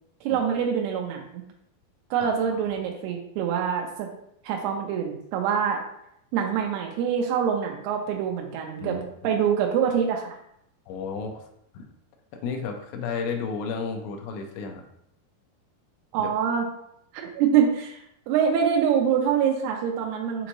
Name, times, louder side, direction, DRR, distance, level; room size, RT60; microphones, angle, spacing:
voice 1, 0.2-1.4 2.1-4.1 4.4-5.8 6.3-8.9 9.2-10.4 16.1-16.7 17.3-18.0 18.3-20.5, right 7 dB, 90° right, 1 dB, 2.6 m, -25 dB
voice 2, 2.2-2.6 8.8-9.1 10.9-11.4 11.7-11.9 12.4-14.8 16.2-16.3, left 5 dB, 80° left, 3 dB, 2.5 m, -32 dB
6.8 x 2.6 x 3.0 m, 0.74 s
omnidirectional pair, 4.5 m